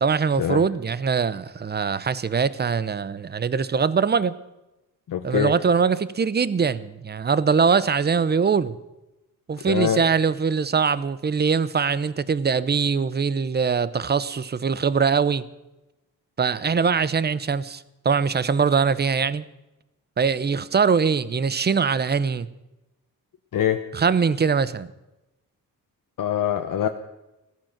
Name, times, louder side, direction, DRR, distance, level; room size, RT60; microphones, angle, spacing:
voice 1, 0.0-4.4 5.2-8.8 9.5-15.4 16.4-19.4 20.2-22.5 23.9-24.9, right 5 dB, 30° right, 0.7 m, -22 dB
voice 2, 5.1-5.5 9.7-10.0 23.5-23.8 26.2-26.9, left 9 dB, 65° left, 0.9 m, -23 dB
16.0 x 14.0 x 5.9 m
wide cardioid pair, 140°, 36 cm